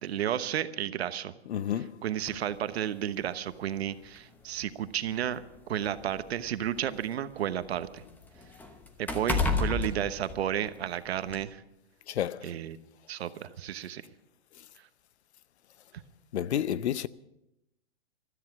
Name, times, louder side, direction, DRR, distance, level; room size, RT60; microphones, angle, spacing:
voice 1, 0.0-1.3 2.0-5.4 5.7-8.0 9.0-11.6 12.4-12.8 13.1-14.0, right 10 dB, 75° right, 1.1 m, -32 dB
voice 2, 1.4-2.0 12.1-12.5 16.3-17.1, left 10 dB, 85° left, 0.8 m, -30 dB
sound 1, 2.3-2.4 3.5-3.6 4.0-4.2 5.1-7.1 7.5-10.9 11.3-11.4, left 4 dB, 5° left, 0.9 m, -32 dB
16.0 x 13.5 x 6.0 m
hypercardioid pair, 160°, 32 cm